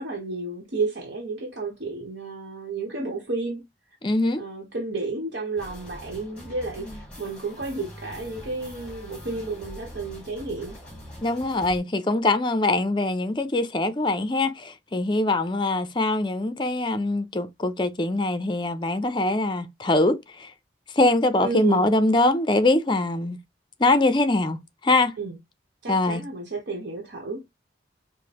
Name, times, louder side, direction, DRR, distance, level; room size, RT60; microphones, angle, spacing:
voice 1, 0.0-3.6 4.4-10.8 21.4-21.9 25.2-25.4 25.8-27.5, right 3 dB, 70° right, 1.0 m, -32 dB
voice 2, 4.0-4.4 11.2-20.5 21.0-23.4 23.8-25.1 25.9-26.2, left 2 dB, 25° left, 0.5 m, -23 dB
sound 1, 5.6-11.8, equal, 5° left, 1.4 m, -43 dB
4.9 x 2.1 x 2.9 m
head